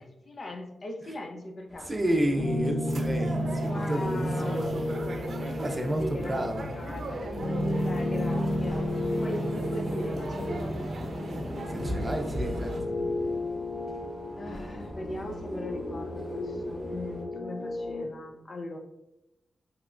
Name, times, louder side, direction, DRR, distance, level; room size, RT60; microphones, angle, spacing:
voice 1, 0.3-2.2 3.6-4.8 5.4-7.3 7.8-11.1 14.3-18.8, left 1 dB, 50° left, 3 dB, 0.5 m, -40 dB
sound 1, 1.7-17.2, equal, 10° left, 1.0 m, -46 dB
voice 2, 1.8-4.8 5.6-6.7 11.7-13.0, right 1 dB, 20° right, 3 dB, 0.6 m, -31 dB
sound 2, 2.4-18.0, left 1 dB, 70° left, 1.3 m, -32 dB
sound 3, 2.9-12.8, right 1 dB, 65° right, 0.6 m, -38 dB
3.4 x 3.0 x 2.5 m, 0.88 s
cardioid pair, 70°, 0 cm